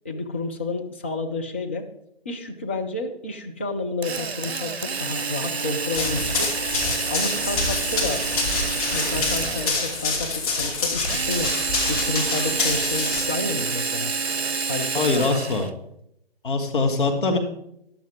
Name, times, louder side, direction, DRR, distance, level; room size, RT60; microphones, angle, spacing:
voice 1, 0.0-1.9 2.2-6.5 7.1-8.2 8.9-11.5 11.9-14.1 14.7-15.7, left 2 dB, 10° left, 1 dB, 0.4 m, -30 dB
Drill, 4.0-10.1 11.0-15.7, right 5 dB, 90° right, 0.6 m, -28 dB
Run, 6.0-13.2, left 3 dB, 35° left, 3.1 m, -26 dB
voice 2, 14.9-15.7 16.4-17.4, left 3 dB, 55° left, 3 dB, 1.8 m, -22 dB
13.5 x 11.5 x 3.6 m, 0.79 s
figure-of-eight pair, 135°, 31 cm